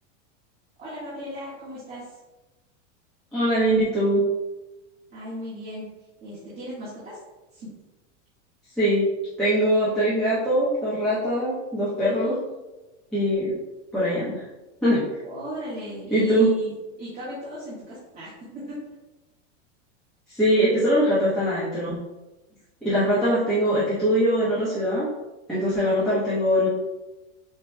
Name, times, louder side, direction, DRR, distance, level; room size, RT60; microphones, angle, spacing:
voice 1, 0.8-2.1 5.1-5.8 6.2-7.2 7.5-7.7 12.2-12.6 15.2-16.7 17.0-18.7 26.0-26.1, equal, 25° right, -10 dB, 1.5 m, -37 dB
voice 2, 3.3-4.2 8.8-9.1 9.4-12.4 13.1-13.5 13.9-14.4 14.8-15.0 16.1-16.5 20.3-22.0 22.8-25.1 25.5-26.7, equal, ahead, -13 dB, 1.1 m, -22 dB
7.2 x 3.2 x 2.2 m, 1.1 s
supercardioid pair, 155°, 37 cm